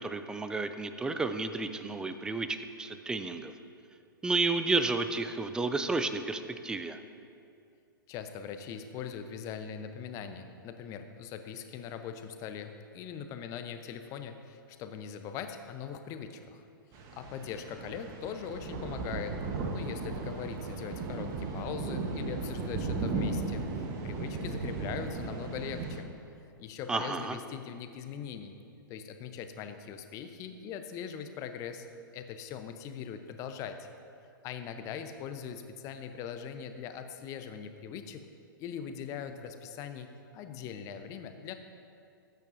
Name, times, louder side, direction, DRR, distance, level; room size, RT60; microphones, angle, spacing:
voice 1, 0.0-3.5 4.2-7.0 26.9-27.4, right 3 dB, 5° right, 10 dB, 0.4 m, -31 dB
voice 2, 8.1-16.7 16.9-19.3 19.7-26.1 26.4-28.6 28.9-31.9 32.1-33.9 34.4-38.3 38.6-41.5, left 7 dB, 30° left, 8 dB, 0.8 m, -41 dB
sound 1, 16.9-26.0, right 3 dB, 30° right, 1.1 m, -36 dB
18.5 x 9.1 x 2.6 m, 2.5 s
figure-of-eight pair, 110°, 12 cm